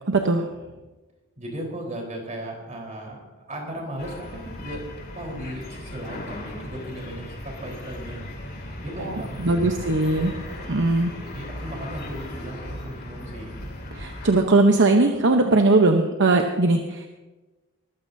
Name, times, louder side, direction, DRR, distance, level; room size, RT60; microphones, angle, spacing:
voice 1, 1.4-4.8 5.1-9.9 10.4-10.7 11.2-13.6, right 1 dB, 35° right, 0 dB, 4.1 m, -36 dB
sound 1, 4.0-14.4, left 1 dB, 45° left, 2.6 m, -37 dB
voice 2, 9.4-10.3 10.7-11.1 13.9-17.1, right 2 dB, 55° right, 4 dB, 0.9 m, -19 dB
21.0 x 14.5 x 2.7 m, 1.2 s
head